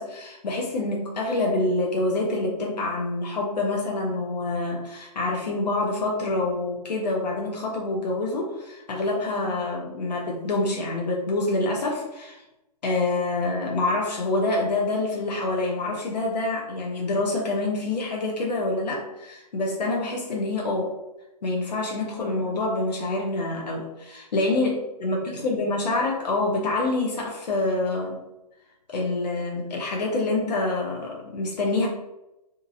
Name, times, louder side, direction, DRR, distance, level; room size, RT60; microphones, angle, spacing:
voice 1, 0.0-12.4 12.8-20.9 21.4-28.2 28.9-31.9, left 2 dB, 80° left, -1 dB, 0.7 m, -26 dB
2.8 x 2.5 x 2.6 m, 0.93 s
hypercardioid pair, 180°, 21 cm